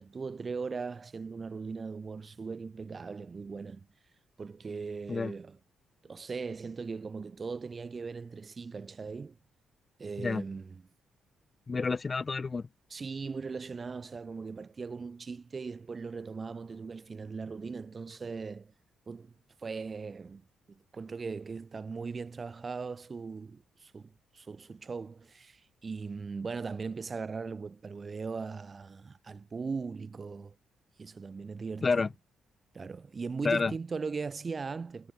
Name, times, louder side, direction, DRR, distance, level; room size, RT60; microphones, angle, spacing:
voice 1, 0.0-3.9 4.4-5.6 6.0-9.4 10.0-10.8 12.9-18.7 19.1-19.3 19.6-20.4 20.7-30.6 31.0-32.0 32.7-35.1, right 4 dB, 35° right, 2.3 m, -39 dB
voice 2, 11.7-12.7 31.8-32.1 33.4-33.7, left 4 dB, 30° left, 2.3 m, -29 dB
cardioid pair, 90°, 0 cm